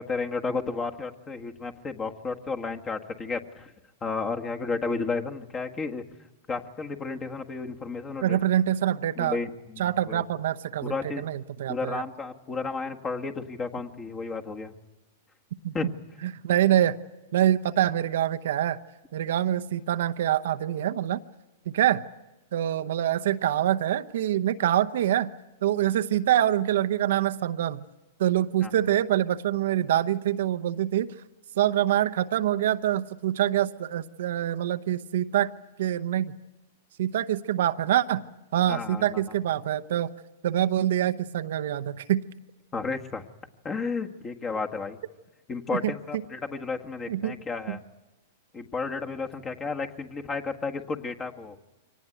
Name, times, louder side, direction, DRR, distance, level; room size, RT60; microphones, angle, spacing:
voice 1, 0.0-3.7 4.0-6.0 6.5-8.4 9.2-10.2 10.8-11.2 11.7-14.7 15.7-15.9 28.6-28.7 38.7-39.3 42.7-43.2 43.6-45.0 45.5-47.8 48.5-51.6, left 4 dB, 20° left, 4 dB, 1.7 m, -32 dB
voice 2, 8.2-9.4 9.8-12.0 15.6-15.9 16.2-17.0 17.3-18.8 19.1-21.2 21.7-22.0 22.5-25.3 25.6-27.8 28.2-31.1 31.6-35.5 35.8-36.3 37.0-38.2 38.5-40.1 40.4-42.2 45.7-45.9 47.1-47.4 47.7-47.8, right 12 dB, 70° right, 10 dB, 0.8 m, -25 dB
24.5 x 18.5 x 9.2 m, 1.1 s
hypercardioid pair, 125°, 0 cm